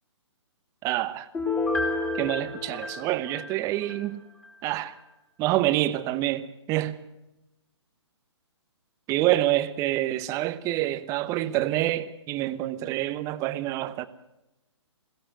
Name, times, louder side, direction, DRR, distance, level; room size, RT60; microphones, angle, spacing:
voice 1, 0.8-1.3 2.1-4.2 4.6-4.9 5.4-7.0 9.1-14.0, right 15 dB, 20° right, 1.0 m, -27 dB
Piano, 1.3-4.0 4.4-4.5, left 3 dB, 10° left, 3.8 m, -30 dB
21.5 x 16.0 x 8.0 m
hypercardioid pair, 140°, 15 cm